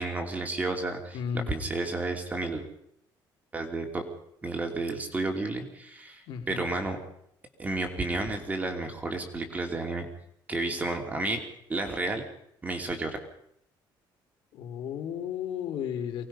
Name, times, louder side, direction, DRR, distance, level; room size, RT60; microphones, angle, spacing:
voice 1, 0.0-1.2 1.5-2.7 3.5-4.0 4.4-7.0 7.6-10.1 10.5-11.4 11.7-12.2 12.6-13.2, right 2 dB, 20° right, 4 dB, 2.9 m, -31 dB
voice 2, 1.1-1.5 6.3-6.6 14.5-16.3, left 8 dB, 75° left, 4 dB, 3.2 m, -34 dB
24.0 x 19.5 x 5.6 m, 0.73 s
cardioid pair, 140°, 8 cm